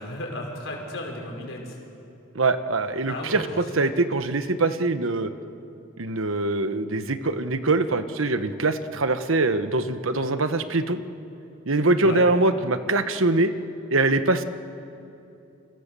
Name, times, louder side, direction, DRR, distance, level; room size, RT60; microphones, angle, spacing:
voice 1, 0.0-1.8 3.1-3.5 12.0-12.3, left 1 dB, 70° left, 0 dB, 5.7 m, -34 dB
voice 2, 2.3-5.3 6.0-11.0 11.7-13.5 13.9-14.4, right 2 dB, 80° right, 10 dB, 1.2 m, -23 dB
29.0 x 25.5 x 6.9 m, 2.8 s
head